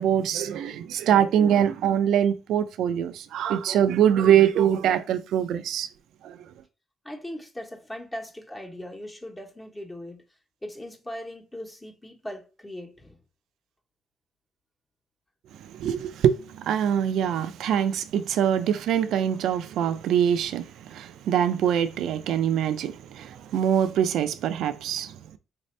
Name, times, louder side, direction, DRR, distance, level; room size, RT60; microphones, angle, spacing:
voice 1, 0.0-5.9 6.2-6.4 15.6-25.2, right 9 dB, 80° right, 0.4 m, -23 dB
voice 2, 7.0-10.2 10.6-13.2, left 1 dB, 15° left, 1.1 m, -39 dB
4.0 x 2.7 x 3.2 m
cardioid pair, 90°, 0 cm